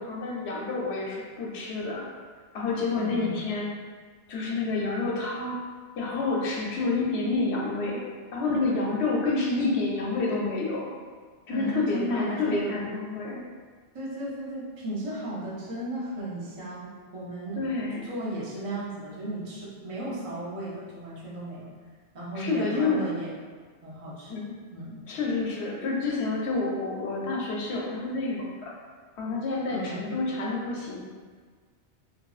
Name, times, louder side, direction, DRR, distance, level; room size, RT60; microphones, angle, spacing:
voice 1, 0.0-2.1 2.5-3.7 4.3-5.6 6.0-8.0 8.3-10.9 11.5-13.4 17.6-18.1 22.4-23.1 24.3-24.6 25.1-28.7 29.2-31.0, left 3 dB, 80° left, -2 dB, 0.9 m, -28 dB
voice 2, 3.0-3.5 11.5-12.7 13.9-17.6 18.0-21.7 22.1-23.3 23.8-24.4 24.7-25.0 29.7-30.1, right 1 dB, 40° right, -6 dB, 0.5 m, -35 dB
2.9 x 2.6 x 2.3 m, 1.5 s
omnidirectional pair, 1.1 m